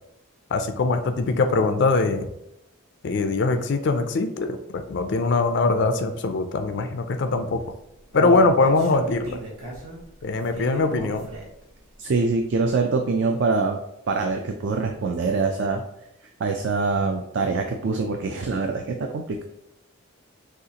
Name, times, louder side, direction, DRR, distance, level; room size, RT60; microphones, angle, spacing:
voice 1, 0.5-2.3 3.0-7.6 8.1-9.4 10.2-11.2, left 3 dB, 55° left, 7 dB, 0.4 m, -22 dB
Human voice, 7.5-11.7 12.1-12.2 12.7-12.8, right 1 dB, 80° right, 1.3 m, -35 dB
voice 2, 12.0-13.8 14.1-15.8 16.4-19.4, right 4 dB, 55° right, 4 dB, 0.4 m, -24 dB
6.5 x 2.4 x 2.8 m, 0.85 s
head